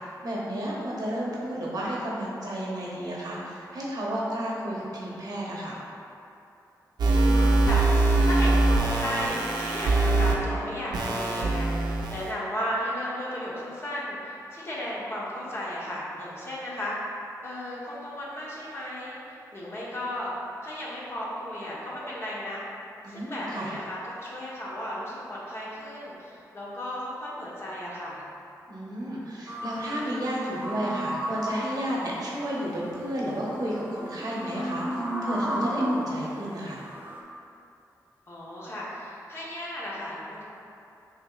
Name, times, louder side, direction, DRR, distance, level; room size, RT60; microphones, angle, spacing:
voice 1, 0.2-5.8 23.0-23.7 28.7-36.8, equal, 65° right, -5 dB, 1.0 m, -32 dB
sound 1, 7.0-10.3 10.9-12.3, right 2 dB, 85° right, 0.5 m, -22 dB
voice 2, 7.1-16.9 17.4-20.3 20.6-22.6 23.1-28.2 38.3-40.4, equal, 40° left, -7 dB, 1.1 m, -35 dB
sound 2, 29.5-36.1 36.8-37.2, equal, 20° right, 0.6 m, -33 dB
6.0 x 3.1 x 2.5 m, 2.7 s
cardioid pair, 70°, 7 cm